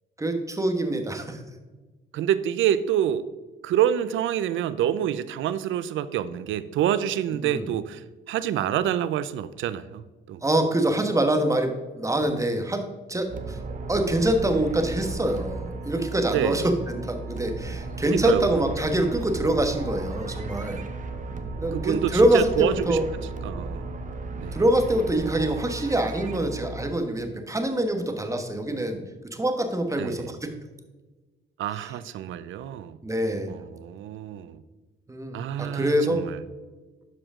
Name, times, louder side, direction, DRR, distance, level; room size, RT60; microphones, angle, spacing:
voice 1, 0.2-1.4 7.3-7.7 10.4-13.6 13.9-20.8 21.6-23.1 24.5-29.0 29.3-30.5 31.8-31.9 33.0-33.5 35.1-36.2, right 1 dB, 15° right, 5 dB, 1.3 m, -25 dB
voice 2, 2.1-3.3 3.6-8.0 8.3-10.0 10.3-10.4 16.3-16.6 18.2-18.5 21.7-23.0 23.4-23.9 24.4-24.6 30.0-30.3 31.6-33.0 33.5-34.6 35.3-36.4, right 10 dB, 75° right, 14 dB, 0.6 m, -27 dB
sound 1, 13.3-26.9, right 3 dB, 40° right, 1.0 m, -35 dB
12.0 x 5.0 x 3.7 m, 1.3 s
cardioid pair, 90°, 20 cm